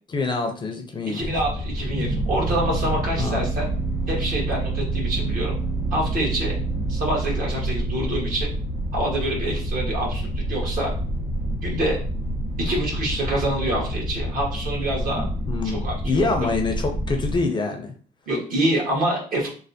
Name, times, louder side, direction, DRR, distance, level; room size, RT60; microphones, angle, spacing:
voice 1, 0.1-1.3 3.2-3.5 15.5-17.9, left 3 dB, 25° left, 4 dB, 0.5 m, -26 dB
voice 2, 1.1-3.7 4.1-5.5 5.9-6.6 6.9-8.5 8.9-10.9 11.6-12.0 12.6-15.2 15.6-16.2 18.3-19.5, right 1 dB, 55° right, -2 dB, 1.4 m, -26 dB
sound 1, 1.2-17.4, right 1 dB, 85° right, 1.4 m, -27 dB
3.2 x 2.1 x 2.7 m, 0.43 s
cardioid pair, 110°, 17 cm